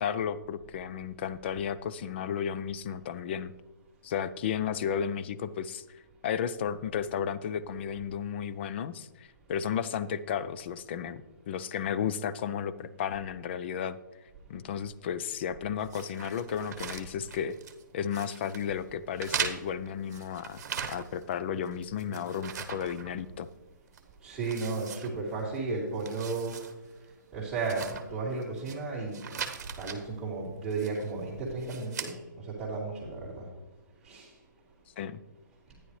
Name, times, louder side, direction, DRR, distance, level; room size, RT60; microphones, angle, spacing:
voice 1, 0.0-3.5 4.0-5.8 6.2-11.2 11.5-14.0 14.5-17.6 17.9-20.6 20.9-23.5 35.0-35.2, left 8 dB, 35° left, 15 dB, 0.4 m, -33 dB
sound 1, 15.9-17.8 18.1-18.6 19.2-21.3 21.6-23.6 23.9-24.0 24.4-25.6 25.9-26.7 27.0-27.1 27.6-28.8 29.1-30.0 30.7-31.1 31.6-32.1, right 7 dB, 50° right, 1.0 m, -39 dB
voice 2, 24.2-26.5 27.3-29.2 29.8-33.5 34.0-34.3, right 3 dB, 5° right, -12 dB, 2.4 m, -34 dB
12.0 x 10.0 x 3.2 m, 1.1 s
hypercardioid pair, 160°, 11 cm